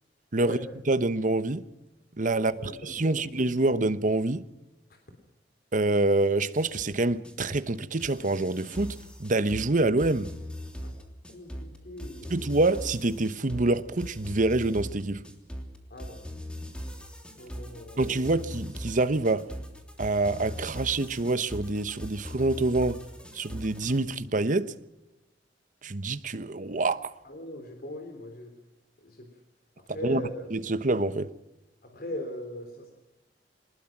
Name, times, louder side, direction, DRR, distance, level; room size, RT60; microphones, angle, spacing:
voice 1, 0.9-1.6 2.2-4.4 5.7-10.3 12.3-15.2 18.0-19.4 20.0-23.0 23.3-24.7 25.8-27.1 30.0-30.2 30.5-31.3, right 2 dB, 45° right, 1.0 m, -26 dB
voice 2, 2.3-3.3 10.8-10.9 11.3-12.3 15.9-16.2 17.4-18.3 27.2-28.5 29.0-29.3 29.9-30.5 31.8-32.9, left 1 dB, 60° left, 3.5 m, -40 dB
sound 1, 6.6-24.0, equal, 5° left, 3.1 m, -40 dB
23.0 x 20.0 x 6.1 m
head